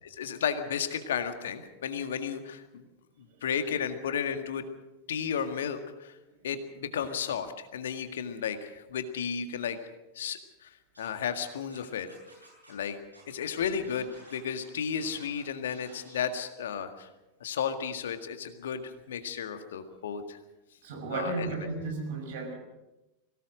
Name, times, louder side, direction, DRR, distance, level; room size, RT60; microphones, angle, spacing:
voice 1, 0.0-2.9 3.2-4.6 5.1-6.1 6.4-9.8 10.2-12.1 12.7-13.0 13.3-17.1 17.4-20.4 21.1-21.5, left 7 dB, 60° left, 8 dB, 1.8 m, -33 dB
Scratching (performance technique), 10.9-11.8 12.1-12.9 13.1-13.2 13.5-15.4 15.7-16.3, right 1 dB, 85° right, 8.0 m, -54 dB
voice 2, 20.8-22.6, right 3 dB, 55° right, 4 dB, 5.7 m, -34 dB
23.0 x 18.0 x 6.4 m, 1.0 s
figure-of-eight pair, 90°, 0 cm